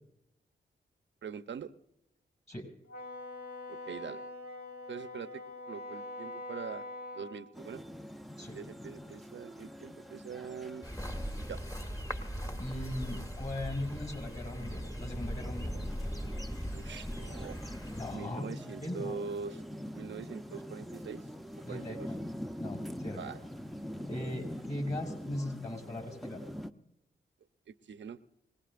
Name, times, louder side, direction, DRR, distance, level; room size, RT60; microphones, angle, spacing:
voice 1, 1.2-1.7 3.7-4.2 4.9-6.9 7.1-7.8 8.5-10.9 11.5-11.6 16.7-17.6 18.1-19.6 19.9-21.3 21.5-22.1 23.2-23.4 27.7-28.2, right 6 dB, 65° right, 12 dB, 0.8 m, -43 dB
Wind instrument woodwind instrument, 2.9-7.4, left 2 dB, 55° left, 3.4 m, -43 dB
sound 1, 7.5-26.7, equal, ahead, 0.7 m, -45 dB
sound 2, 10.8-18.2, equal, 15° left, 1.6 m, -39 dB
voice 2, 12.6-15.7 17.9-19.2 21.7-22.2 22.6-23.3 24.1-26.4, left 1 dB, 35° left, 4 dB, 6.1 m, -39 dB
25.0 x 19.0 x 2.5 m, 0.84 s
supercardioid pair, 45°, 20 cm